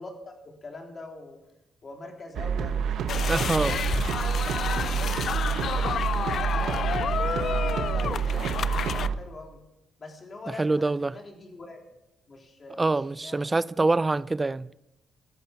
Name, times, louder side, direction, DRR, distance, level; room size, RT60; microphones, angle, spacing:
voice 1, 0.0-1.4 1.8-4.0 4.5-7.3 7.6-9.6 10.0-11.8 12.3-13.5, left 2 dB, 40° left, 3.5 m, -43 dB
sound 1, 2.3-9.1, right 7 dB, 70° right, 1.0 m, -28 dB
sound 2, 3.1-9.1, left 8 dB, 60° left, 0.4 m, -30 dB
voice 2, 3.3-3.7 10.6-11.1 12.8-14.7, right 3 dB, 20° right, 0.4 m, -25 dB
16.5 x 11.0 x 5.9 m
cardioid pair, 90°, 0 cm